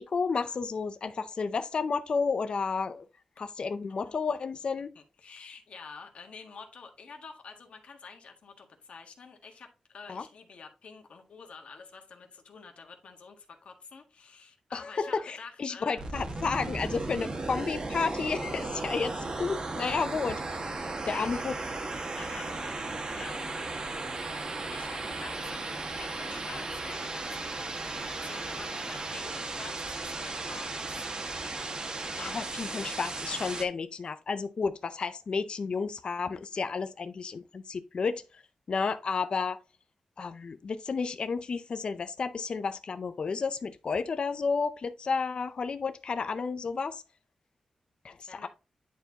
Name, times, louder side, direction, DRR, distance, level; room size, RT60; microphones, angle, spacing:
voice 1, 0.0-3.0 3.4-4.9 10.1-10.2 14.7-21.5 31.6-31.7 32.1-38.4 38.7-39.6 40.2-47.0 48.0-48.5, left 5 dB, 50° left, 0.5 m, -32 dB
voice 2, 4.9-16.1 21.0-21.4 22.2-23.5 24.7-31.1 48.3-48.5, left 5 dB, 70° left, 1.6 m, -48 dB
sound 1, 16.0-33.6, right 3 dB, 40° right, 1.3 m, -36 dB
10.0 x 4.5 x 2.8 m
wide cardioid pair, 140°, 2 cm